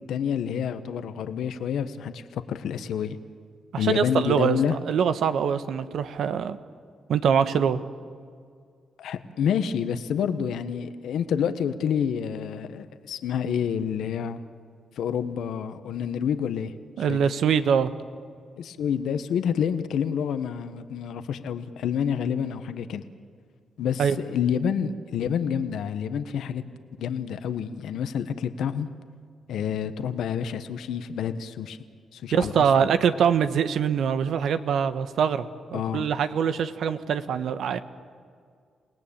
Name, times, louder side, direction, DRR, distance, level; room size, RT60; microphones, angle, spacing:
voice 1, 0.1-3.2 3.8-4.7 9.0-14.4 15.0-16.7 17.1-17.2 18.6-23.0 23.8-26.6 27.0-28.9 29.5-31.8 32.1-32.7 35.7-36.1, left 8 dB, 85° left, 10 dB, 1.2 m, -28 dB
voice 2, 3.7-6.6 7.1-7.8 17.0-17.9 24.0-24.2 32.3-35.4 35.7-37.8, right 7 dB, 75° right, 11 dB, 1.2 m, -23 dB
28.5 x 18.5 x 8.8 m, 2.1 s
cardioid pair, 85°, 0 cm